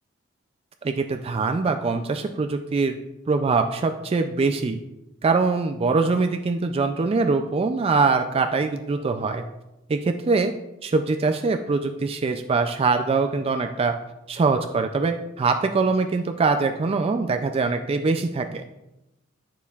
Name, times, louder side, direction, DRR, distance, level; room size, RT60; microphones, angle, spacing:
voice 1, 0.8-3.0 3.3-4.8 5.2-9.4 9.9-10.5 10.8-13.9 14.3-18.6, right 4 dB, 30° right, 6 dB, 0.3 m, -23 dB
9.1 x 6.9 x 2.4 m, 0.93 s
head